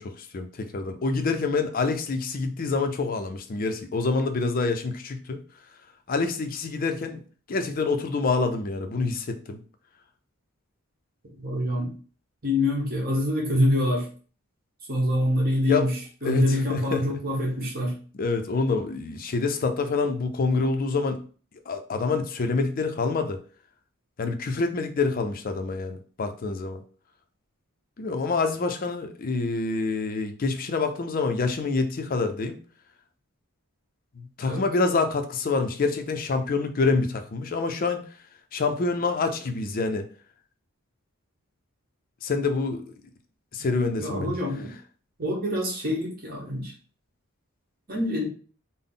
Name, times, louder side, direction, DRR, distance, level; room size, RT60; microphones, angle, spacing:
voice 1, 0.0-5.4 6.1-7.2 7.5-9.6 15.7-15.9 16.2-17.2 18.2-21.2 21.7-23.4 24.2-26.8 28.0-32.6 34.2-38.1 38.5-40.1 42.2-42.8 43.5-44.4, left 3 dB, 40° left, 7 dB, 0.4 m, -26 dB
voice 2, 11.4-11.9 12.4-14.0 14.9-15.9 16.2-17.9 34.5-34.6 44.0-44.7 45.2-46.7 47.9-48.3, left 1 dB, 45° right, -2 dB, 1.1 m, -25 dB
3.7 x 2.0 x 3.7 m, 0.40 s
head